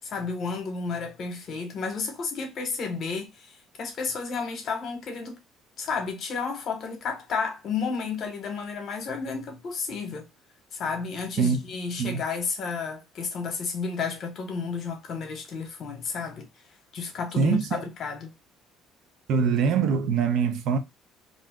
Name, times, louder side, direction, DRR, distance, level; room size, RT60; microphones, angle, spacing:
voice 1, 0.0-3.5 3.8-5.4 5.8-10.3 10.7-16.5 16.9-18.3, left 5 dB, 40° left, 1.0 m, -32 dB
voice 2, 17.4-17.8 19.3-20.8, right 6 dB, 60° right, 0.5 m, -23 dB
2.5 x 2.2 x 3.5 m
cardioid pair, 160°, 0 cm